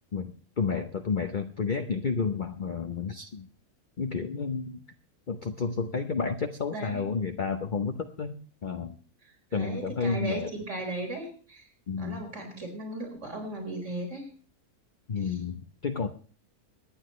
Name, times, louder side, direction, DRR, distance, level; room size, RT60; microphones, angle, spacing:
voice 1, 0.1-3.5 4.0-4.8 5.3-9.0 9.5-10.5 11.9-12.2 15.1-16.1, left 5 dB, 40° left, 6 dB, 0.9 m, -31 dB
voice 2, 6.7-7.0 9.2-11.7 12.0-14.3 15.2-15.3, right 2 dB, 50° right, 2 dB, 4.9 m, -37 dB
24.0 x 9.9 x 3.2 m, 0.41 s
omnidirectional pair, 1.6 m